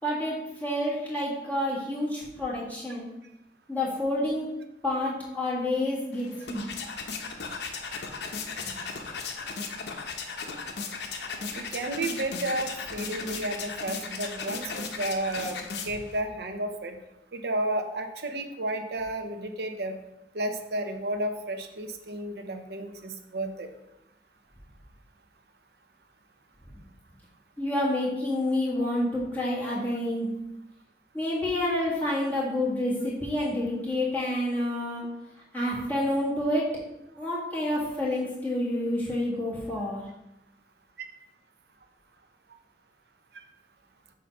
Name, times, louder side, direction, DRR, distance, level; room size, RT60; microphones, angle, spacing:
voice 1, 0.0-3.1 3.7-4.5 4.8-6.6 8.6-8.7 27.6-30.3 31.1-35.0 35.5-36.6 37.2-40.0, left 1 dB, 10° left, -8 dB, 1.8 m, -28 dB
sound 1, 6.1-16.2, left 4 dB, 75° left, 0.7 m, -36 dB
voice 2, 11.5-15.6 15.8-17.0 17.3-19.9 20.3-23.7, right 1 dB, 65° right, 6 dB, 0.6 m, -32 dB
7.5 x 2.7 x 5.3 m, 0.91 s
head